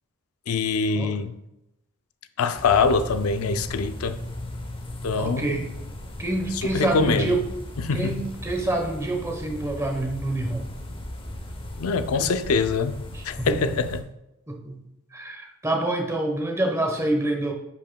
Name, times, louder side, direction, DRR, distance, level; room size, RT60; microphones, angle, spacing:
voice 1, 0.5-1.3 2.4-4.2 5.0-5.6 6.6-7.4 7.8-8.2 11.8-14.1, left 4 dB, 90° left, 0.4 m, -24 dB
sound 1, 2.6-14.0, left 1 dB, 25° left, 0.8 m, -37 dB
voice 2, 5.2-5.7 6.2-7.4 7.9-10.7 13.1-13.8 14.5-14.8 15.1-17.5, right 2 dB, 15° right, 1.0 m, -27 dB
10.0 x 5.2 x 2.2 m
head